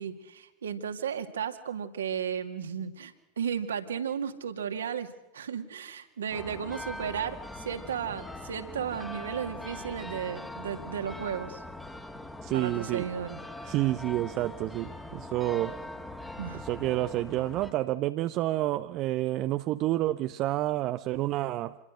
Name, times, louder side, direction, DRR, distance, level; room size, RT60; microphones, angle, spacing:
voice 1, 0.0-5.1 5.3-11.6 12.5-13.4 16.4-16.6, right 8 dB, 65° right, 7 dB, 2.3 m, -34 dB
sound 1, 6.3-17.7, left 1 dB, 5° left, 2.0 m, -42 dB
voice 2, 12.4-13.1 13.6-15.8 16.5-21.8, right 15 dB, 40° right, 11 dB, 0.8 m, -29 dB
28.0 x 22.0 x 6.4 m, 0.95 s
figure-of-eight pair, 90°, 0 cm